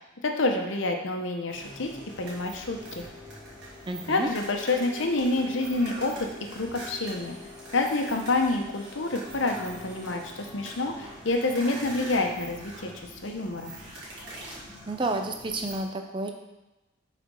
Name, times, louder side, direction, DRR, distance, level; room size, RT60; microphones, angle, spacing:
voice 1, 0.2-1.9 2.2-3.0 4.1-7.4 7.7-12.9 13.2-13.7, left 2 dB, 70° left, 3 dB, 0.9 m, -28 dB
sound 1, 1.5-15.8, equal, 55° right, 2.0 m, -43 dB
voice 2, 3.9-4.3 14.9-16.3, right 2 dB, 25° right, 5 dB, 0.5 m, -30 dB
6.2 x 4.2 x 5.4 m, 1.0 s
head